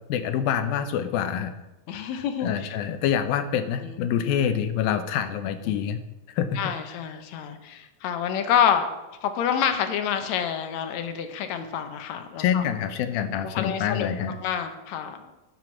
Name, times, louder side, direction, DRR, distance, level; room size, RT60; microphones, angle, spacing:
voice 1, 0.1-1.5 2.1-6.0 6.3-6.7 12.4-14.4, left 9 dB, 90° left, 10 dB, 2.6 m, -26 dB
voice 2, 1.9-2.7 3.8-4.0 5.6-5.8 6.6-8.9 9.2-12.6 13.4-14.1 14.4-15.3, left 8 dB, 65° left, 7 dB, 1.9 m, -27 dB
11.5 x 6.1 x 7.2 m, 1.0 s
omnidirectional pair, 4.1 m